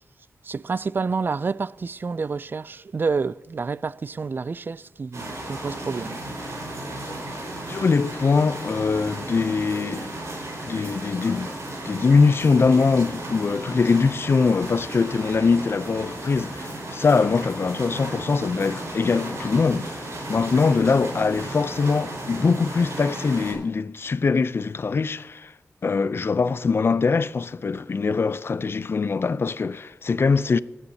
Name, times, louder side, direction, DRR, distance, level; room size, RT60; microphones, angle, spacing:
voice 1, 0.4-6.2, right 4 dB, 45° right, 0.3 m, -28 dB
sound 1, 5.1-23.5, right 1 dB, 80° right, 4.7 m, -34 dB
voice 2, 7.7-10.0 10.6-11.5 11.8-25.5 25.8-30.6, left 4 dB, 55° left, 0.5 m, -22 dB
23.5 x 9.9 x 2.8 m
wide cardioid pair, 70°, 5 cm